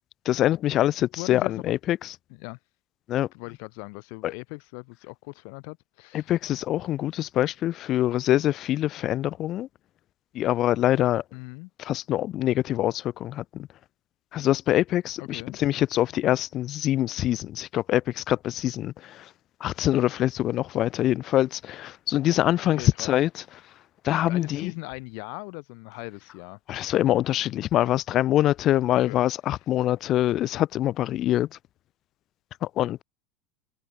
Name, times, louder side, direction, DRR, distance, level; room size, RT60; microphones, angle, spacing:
voice 1, 0.3-2.1 3.1-3.3 4.2-4.3 6.1-9.7 10.3-11.2 11.8-13.7 14.3-19.3 19.6-23.4 24.0-24.7 26.7-31.5 32.6-33.0, left 13 dB, 45° left, 0.6 m, -24 dB
voice 2, 1.1-1.7 2.4-2.6 3.3-6.3 11.3-11.7 15.2-15.6 22.7-23.2 24.3-26.6 29.1-29.2, left 40 dB or more, 65° left, 2.4 m, -39 dB
supercardioid pair, 125°, 0 cm